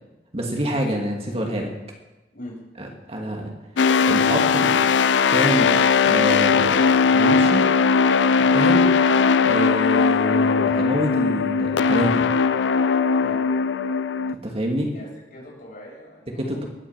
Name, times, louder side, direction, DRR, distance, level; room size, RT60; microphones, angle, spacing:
voice 1, 0.3-1.7 2.8-3.5 4.1-4.7 5.3-5.8 6.0-7.7 8.4-8.9 9.4-12.3 14.3-14.9 16.3-16.6, equal, 35° right, 1 dB, 2.4 m, -26 dB
sound 1, 3.8-14.3, left 5 dB, 85° left, 0.5 m, -19 dB
voice 2, 14.9-16.7, left 1 dB, 55° left, -4 dB, 7.9 m, -41 dB
20.0 x 9.1 x 7.7 m, 1.1 s
head